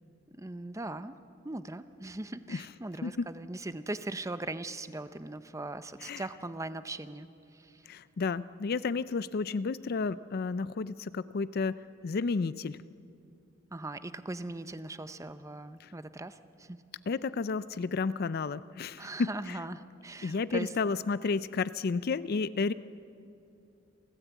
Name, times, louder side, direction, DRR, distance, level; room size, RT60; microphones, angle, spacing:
voice 1, 0.3-1.1 1.4-7.8 13.7-16.8 19.0-20.7, right 2 dB, 15° right, 12 dB, 0.6 m, -40 dB
voice 2, 7.9-12.8 15.8-15.9 17.1-19.6 20.2-22.7, left 4 dB, 50° left, 16 dB, 0.4 m, -32 dB
29.5 x 14.0 x 8.2 m, 2.7 s
head